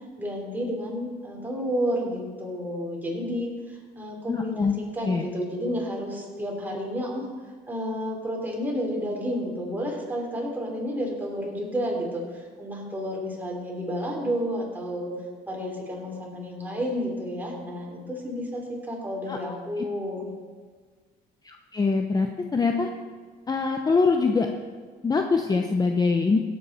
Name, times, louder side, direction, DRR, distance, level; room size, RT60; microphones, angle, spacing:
voice 1, 0.2-7.3 7.7-15.1 15.5-20.3, equal, 10° right, -2 dB, 3.6 m, -31 dB
voice 2, 4.3-4.7 5.0-5.3 19.3-19.6 21.4-22.9 23.5-24.5 25.0-26.4, left 4 dB, 25° left, 4 dB, 0.8 m, -24 dB
17.0 x 8.5 x 4.3 m, 1.5 s
cardioid pair, 110°, 17 cm